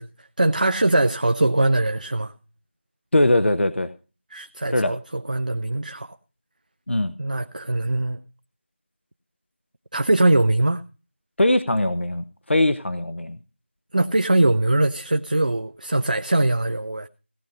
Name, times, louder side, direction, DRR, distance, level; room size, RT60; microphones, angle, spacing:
voice 1, 0.0-2.3 4.3-6.2 7.2-8.2 9.9-10.8 13.9-17.1, right 2 dB, 45° right, 0.5 m, -22 dB
voice 2, 3.1-3.9 4.7-4.9 6.9-7.1 11.4-13.4, left 1 dB, 75° left, 0.8 m, -21 dB
17.0 x 6.3 x 5.5 m
figure-of-eight pair, 175°, 6 cm